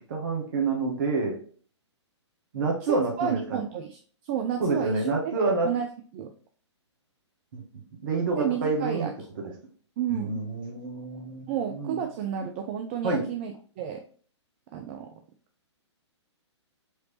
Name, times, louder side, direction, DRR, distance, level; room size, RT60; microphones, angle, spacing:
voice 1, 0.1-1.4 2.5-3.6 4.6-5.7 7.5-7.6 8.0-9.1 10.1-12.0 13.0-13.2, right 3 dB, 45° right, 0 dB, 1.2 m, -28 dB
voice 2, 2.8-5.3 5.6-6.3 8.4-9.1 9.4-9.5 10.0-10.4 11.5-14.0 14.7-15.2, right 9 dB, 25° right, 4 dB, 0.3 m, -31 dB
4.7 x 3.1 x 3.0 m, 0.43 s
figure-of-eight pair, 120°, 15 cm